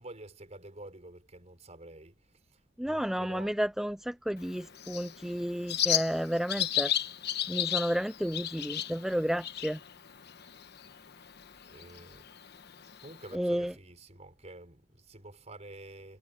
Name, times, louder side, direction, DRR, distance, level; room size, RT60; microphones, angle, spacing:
voice 1, 0.0-3.5 10.7-11.1 11.6-12.3 13.0-16.2, right 2 dB, 35° right, 4.5 m, -49 dB
voice 2, 2.8-6.9 7.5-9.8 13.3-13.7, equal, ahead, 0.4 m, -31 dB
Bird, 4.4-13.3, left 11 dB, 55° left, 1.1 m, -35 dB
head